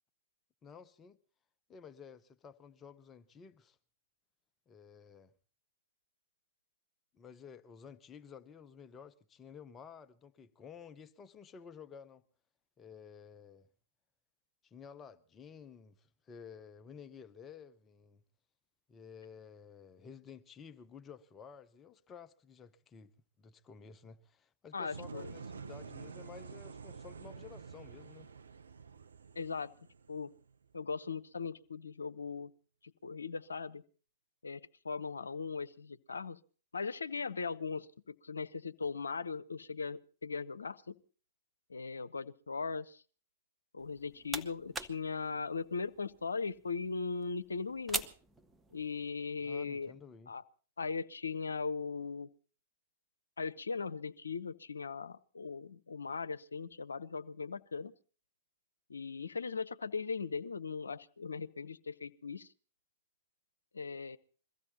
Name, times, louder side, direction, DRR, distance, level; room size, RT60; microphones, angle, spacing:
voice 1, 0.6-1.2 1.7-3.8 4.7-5.3 7.1-12.2 12.8-13.7 14.6-18.2 18.9-23.1 23.4-28.3 49.4-50.3, left 6 dB, 20° left, 0.8 m, -53 dB
voice 2, 24.7-25.3 29.4-29.7 30.1-30.3 30.7-32.5 32.8-33.8 34.4-36.4 36.7-41.0 41.7-43.0 43.7-48.0 48.7-49.9 50.3-50.4 50.8-52.3 53.4-57.9 58.9-62.5 63.7-64.2, left 5 dB, 80° left, 0.8 m, -39 dB
sound 1, 24.9-30.8, right 5 dB, 75° right, 0.7 m, -49 dB
sound 2, 43.8-49.1, right 3 dB, 10° right, 1.0 m, -44 dB
22.5 x 15.0 x 4.0 m
figure-of-eight pair, 105°, 0 cm